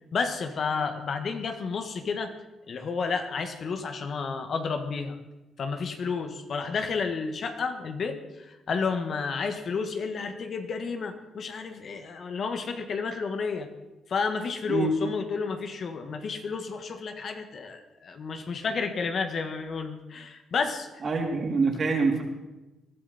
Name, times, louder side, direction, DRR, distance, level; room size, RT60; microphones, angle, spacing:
voice 1, 0.1-2.3 2.7-5.2 5.6-13.7 14.1-20.9, left 5 dB, 55° left, 7 dB, 1.6 m, -31 dB
voice 2, 21.0-22.2, right 4 dB, 45° right, 0 dB, 3.5 m, -25 dB
20.5 x 12.0 x 4.3 m, 1.0 s
cardioid pair, 90°, 0 cm